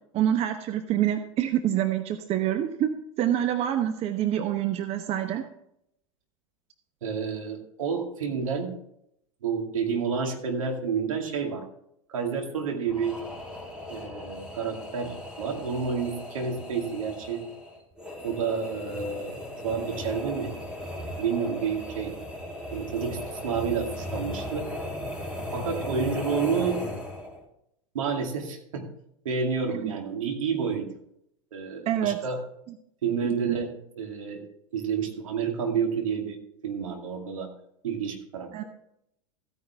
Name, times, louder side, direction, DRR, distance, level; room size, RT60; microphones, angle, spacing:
voice 1, 0.1-2.9 3.2-5.4 29.7-29.9 31.9-32.2 33.2-33.6 38.5-38.6, right 11 dB, 35° right, 8 dB, 0.9 m, -26 dB
voice 2, 7.0-8.7 9.4-11.6 12.1-13.2 13.9-15.1 15.4-17.4 18.2-19.3 19.6-20.5 21.2-22.1 22.7-24.7 25.5-26.8 27.9-28.9 29.2-30.9 31.5-32.4 33.0-34.5 34.7-37.5 37.8-38.6, right 6 dB, 70° right, 2 dB, 2.4 m, -29 dB
sound 1, 12.9-27.4, left 1 dB, 5° right, 3.1 m, -37 dB
15.0 x 9.5 x 3.5 m, 0.75 s
figure-of-eight pair, 90°, 18 cm